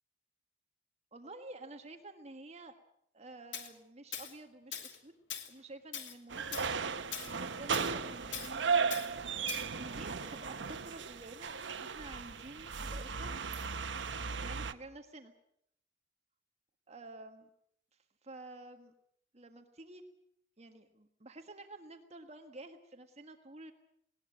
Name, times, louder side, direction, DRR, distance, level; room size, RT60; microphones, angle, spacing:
voice 1, 1.1-2.7 3.1-5.2 5.5-6.8 7.2-8.6 9.7-13.4 14.4-15.3 16.9-17.5 18.2-18.9 19.3-20.0 20.6-23.7, right 2 dB, 35° right, 6 dB, 1.5 m, -50 dB
Tools, 3.5-3.7 4.1-4.3 4.7-5.0 5.3-5.5 5.9-6.2 6.5-6.7 7.1-7.3 7.7-7.9 8.3-8.5 8.9-9.1 9.5-9.7, left 8 dB, 85° left, 2.8 m, -41 dB
sound 1, 6.3-14.7, right 5 dB, 80° right, 1.0 m, -36 dB
19.5 x 19.0 x 8.9 m, 0.72 s
head